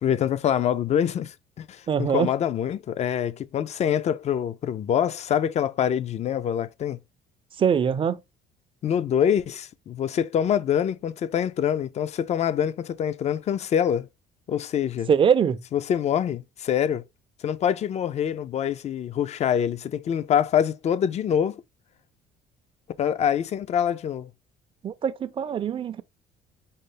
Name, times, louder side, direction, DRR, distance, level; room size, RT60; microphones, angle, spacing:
voice 1, 0.0-7.0 8.8-14.1 14.5-15.1 15.7-17.0 17.4-21.6 23.0-24.3, left 9 dB, 40° left, 0.4 m, -25 dB
voice 2, 1.9-2.3 7.6-8.2 15.1-15.6 24.8-26.0, right 7 dB, 30° right, 0.4 m, -22 dB
5.4 x 2.0 x 3.3 m
cardioid pair, 110°, 17 cm